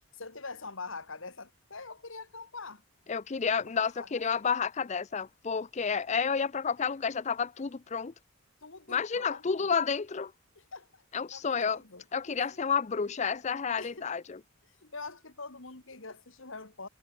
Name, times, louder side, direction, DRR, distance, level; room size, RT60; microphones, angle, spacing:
voice 1, 0.1-2.8 3.7-4.4 8.6-9.7 10.6-11.0 11.3-12.6 13.8-14.1 14.8-16.9, left 3 dB, 60° left, 2.3 m, -44 dB
voice 2, 3.1-8.1 8.9-10.3 11.1-11.8 12.1-14.4, left 6 dB, 30° left, 0.4 m, -30 dB
head